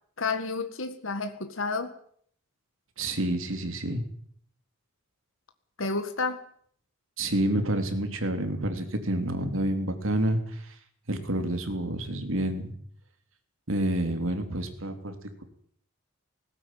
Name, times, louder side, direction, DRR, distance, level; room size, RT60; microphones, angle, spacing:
voice 1, 0.2-1.9 5.8-6.4, left 3 dB, 70° left, 7 dB, 1.9 m, -30 dB
voice 2, 3.0-4.0 7.2-10.8 11.1-12.7 13.7-15.4, right 1 dB, 75° right, 7 dB, 3.4 m, -29 dB
19.0 x 17.0 x 9.3 m, 0.62 s
head